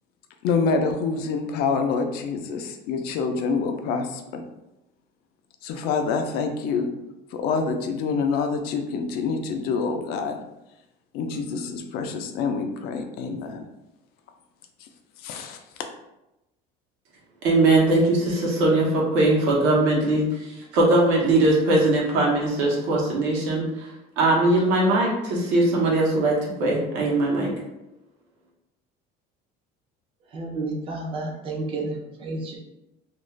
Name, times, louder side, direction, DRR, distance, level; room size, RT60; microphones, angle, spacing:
voice 1, 0.4-4.4 5.6-6.9 7.3-10.4 11.1-13.7 15.2-15.6, left 5 dB, 55° left, 5 dB, 0.4 m, -26 dB
voice 2, 17.4-20.3 20.7-23.6 24.2-27.5, right 2 dB, 75° right, -3 dB, 0.9 m, -20 dB
voice 3, 30.3-32.6, right 2 dB, 30° right, 0 dB, 0.5 m, -31 dB
2.4 x 2.3 x 3.1 m, 0.92 s
cardioid pair, 170°, 19 cm